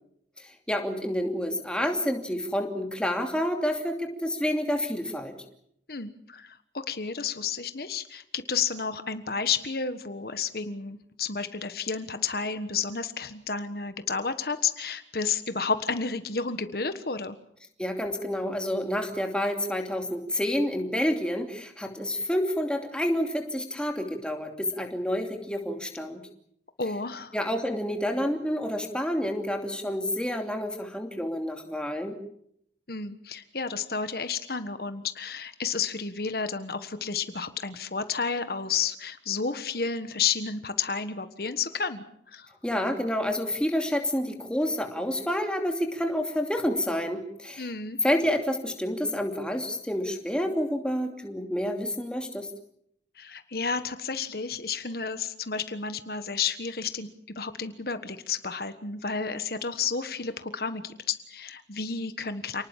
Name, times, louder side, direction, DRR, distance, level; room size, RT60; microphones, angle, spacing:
voice 1, 0.4-5.3 17.8-26.2 27.3-32.1 42.6-47.7 48.0-52.5, equal, 5° left, 4 dB, 2.7 m, -29 dB
voice 2, 5.9-17.4 26.8-27.3 32.9-42.0 42.3-42.5 47.6-48.0 53.2-57.1 57.3-62.6, left 5 dB, 55° left, 10 dB, 1.4 m, -31 dB
29.0 x 19.5 x 7.4 m, 0.72 s
head